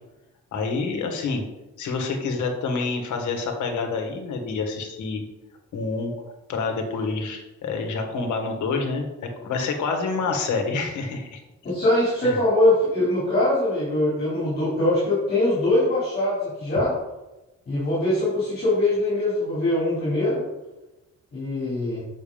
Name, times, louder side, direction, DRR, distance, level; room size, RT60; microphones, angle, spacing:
voice 1, 0.5-1.4 1.8-5.2 5.7-6.1 6.5-9.1 9.4-11.4 12.2-12.4, left 4 dB, 85° left, 3 dB, 1.7 m, -27 dB
voice 2, 11.6-16.9 17.7-20.4 21.3-22.0, left 1 dB, 35° left, -9 dB, 3.5 m, -22 dB
7.2 x 6.5 x 5.2 m, 1.0 s
wide cardioid pair, 180°, 29 cm